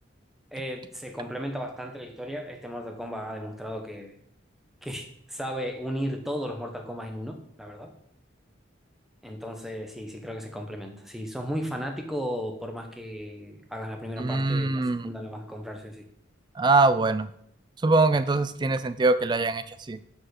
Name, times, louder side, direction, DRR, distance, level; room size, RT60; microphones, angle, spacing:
voice 1, 0.5-4.2 4.8-7.9 9.2-14.7 15.0-16.0, equal, ahead, 3 dB, 0.9 m, -35 dB
voice 2, 14.2-15.1 16.6-17.3 17.8-20.0, right 3 dB, 25° right, 13 dB, 0.3 m, -23 dB
7.5 x 4.2 x 6.4 m, 0.68 s
head